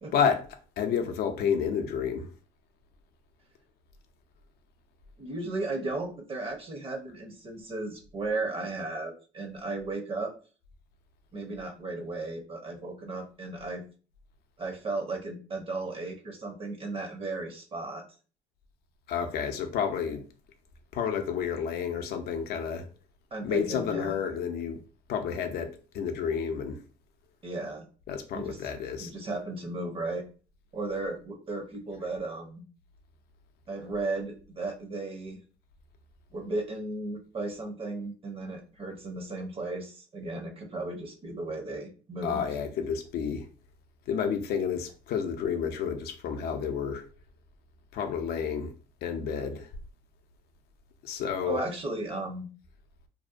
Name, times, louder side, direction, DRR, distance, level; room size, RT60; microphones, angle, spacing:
voice 1, 0.1-0.4 0.8-2.3 19.1-20.3 20.9-22.9 23.4-24.8 25.1-26.8 28.1-29.1 42.2-43.5 44.1-47.1 47.9-48.7 49.0-49.7 51.0-51.6, left 7 dB, 70° left, 0.5 m, -30 dB
voice 2, 5.2-10.3 11.3-13.8 14.6-18.0 23.3-24.2 27.4-27.9 28.3-28.6 29.0-30.3 30.7-32.6 33.7-35.4 36.3-42.4 51.4-52.5, right 2 dB, 35° right, 0.6 m, -35 dB
2.6 x 2.1 x 2.5 m
cardioid pair, 110°, 17 cm